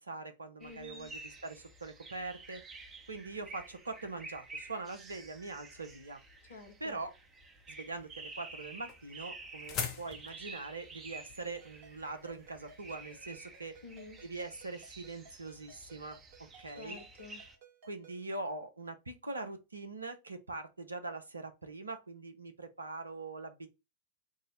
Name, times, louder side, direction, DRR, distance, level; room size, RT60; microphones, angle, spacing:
voice 1, 0.0-2.6 3.1-6.2 6.8-7.1 7.7-13.8 14.2-17.0 17.8-23.7, right 3 dB, 80° right, 0.5 m, -43 dB
voice 2, 0.6-1.1 6.4-7.0 13.8-14.2 16.7-17.4, left 4 dB, 70° left, 0.8 m, -50 dB
sound 1, 0.6-17.6, right 3 dB, 25° right, 0.7 m, -51 dB
sound 2, 8.0-13.2, left 6 dB, 40° left, 0.7 m, -43 dB
Ringtone, 11.4-18.3, right 4 dB, 55° right, 0.8 m, -60 dB
3.6 x 2.0 x 4.0 m
figure-of-eight pair, 90°, 0 cm